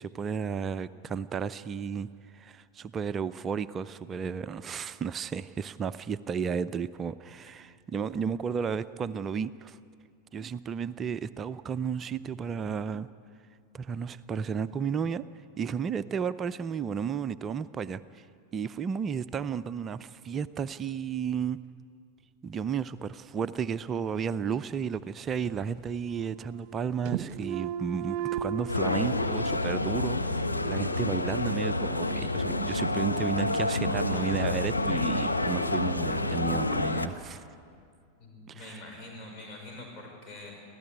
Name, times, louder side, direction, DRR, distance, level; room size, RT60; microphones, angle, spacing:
voice 1, 0.0-9.8 10.3-13.1 13.7-15.2 15.6-18.3 18.5-21.6 22.4-37.5 38.5-38.8, right 6 dB, 25° right, 14 dB, 0.6 m, -33 dB
sound 1, 24.6-25.6 25.9-26.8 27.0-28.7, right 9 dB, 40° right, 1.2 m, -35 dB
sound 2, 28.7-37.1, left 2 dB, 85° left, 1.2 m, -28 dB
voice 2, 38.2-40.5, left 2 dB, 35° left, 1 dB, 5.9 m, -45 dB
26.0 x 15.5 x 10.0 m, 2.3 s
figure-of-eight pair, 90°, 0 cm